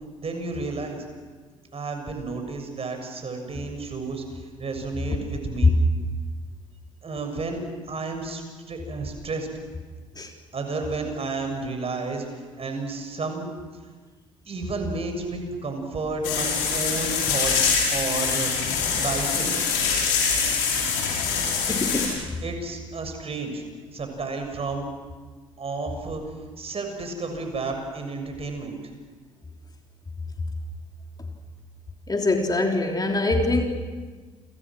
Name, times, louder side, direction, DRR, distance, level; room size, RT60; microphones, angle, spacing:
voice 1, 0.2-1.1 1.7-5.8 7.0-7.6 7.9-9.5 10.5-13.5 13.8-13.9 14.5-17.6 17.9-18.5 18.9-19.6 21.8-22.0 22.4-23.6 23.9-24.8 25.6-26.2 26.6-28.7, right 3 dB, 40° right, 5 dB, 7.0 m, -31 dB
sound 1, 16.2-22.1, left 6 dB, 75° left, 6.9 m, -24 dB
voice 2, 21.7-22.2 32.1-33.6, left 2 dB, 25° left, 2 dB, 3.4 m, -24 dB
30.0 x 26.5 x 6.3 m, 1.4 s
figure-of-eight pair, 50°, 16 cm